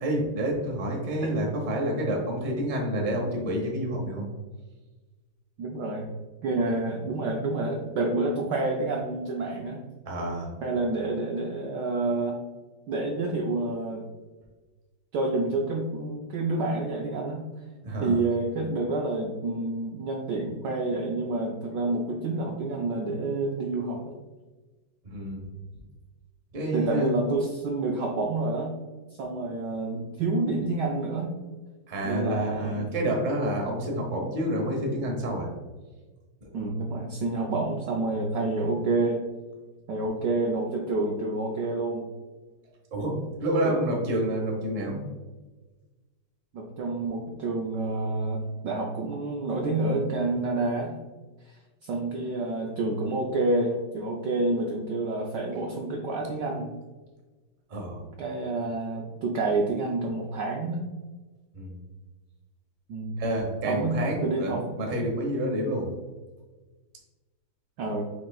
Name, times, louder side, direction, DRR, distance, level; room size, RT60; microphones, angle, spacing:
voice 1, 0.0-4.3 10.1-10.5 17.8-18.2 25.0-25.5 26.5-27.2 31.9-35.5 36.4-36.5 42.9-45.0 57.7-58.0 61.5-61.8 63.2-65.9, right 1 dB, 35° right, 0 dB, 0.7 m, -28 dB
voice 2, 5.6-6.1 6.4-9.8 10.6-12.4 12.9-14.1 15.1-17.4 18.0-24.2 26.7-28.7 29.2-31.3 32.0-32.9 36.5-39.2 39.9-42.1 43.6-43.7 46.5-51.0 51.5-51.6 51.8-56.7 58.2-60.9 62.9-63.2 63.7-64.6 67.8-68.1, right 2 dB, 75° right, 0 dB, 1.0 m, -28 dB
5.5 x 3.7 x 2.3 m, 1.2 s
omnidirectional pair, 2.4 m